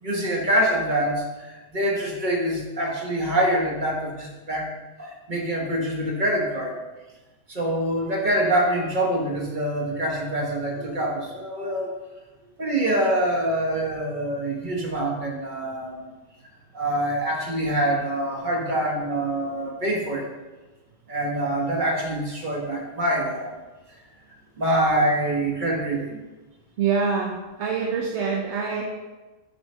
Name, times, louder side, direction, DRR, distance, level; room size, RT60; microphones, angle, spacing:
voice 1, 0.0-4.7 5.0-6.8 7.5-11.9 12.6-16.1 16.7-20.2 21.1-23.5 24.6-26.2, right 1 dB, 40° right, -1 dB, 1.1 m, -25 dB
voice 2, 26.8-28.8, right 5 dB, 70° right, 0 dB, 0.9 m, -25 dB
6.1 x 4.7 x 3.3 m, 1.2 s
omnidirectional pair, 1.3 m